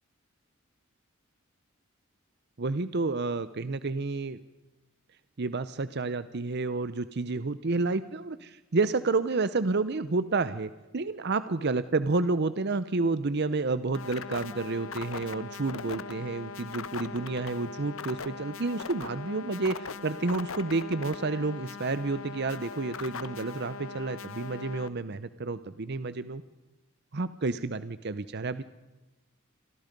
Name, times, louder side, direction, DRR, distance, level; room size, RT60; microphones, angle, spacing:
voice 1, 2.6-4.4 5.4-26.4 27.1-28.6, right 3 dB, 50° right, 14 dB, 0.7 m, -30 dB
sound 1, 13.9-24.9, left 5 dB, 75° left, 1.1 m, -40 dB
29.0 x 26.0 x 5.3 m, 1.1 s
head